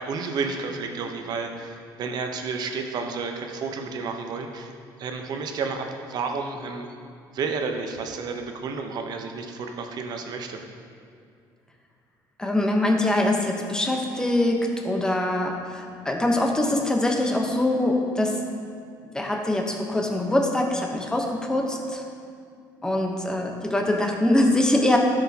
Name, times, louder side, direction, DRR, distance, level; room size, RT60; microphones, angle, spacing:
voice 1, 0.0-7.0 7.3-10.6, right 4 dB, 55° right, 4 dB, 0.8 m, -31 dB
voice 2, 12.4-18.5 19.0-22.0 22.8-25.0, left 1 dB, 10° left, 1 dB, 1.0 m, -23 dB
12.5 x 6.5 x 2.9 m, 2.3 s
cardioid pair, 120°, 8 cm